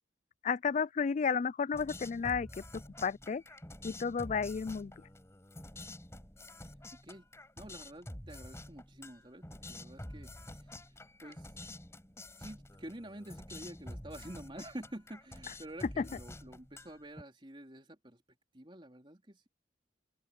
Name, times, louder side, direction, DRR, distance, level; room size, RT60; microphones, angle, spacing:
voice 1, 0.4-2.5 2.7-3.4 3.8-5.1 16.0-16.1, left 6 dB, 40° left, 0.3 m, -32 dB
sound 1, 1.7-17.2, left 1 dB, 15° left, 6.4 m, -48 dB
voice 2, 7.6-11.5 12.4-18.2 18.5-19.5, right 1 dB, 25° right, 3.7 m, -49 dB
open air
head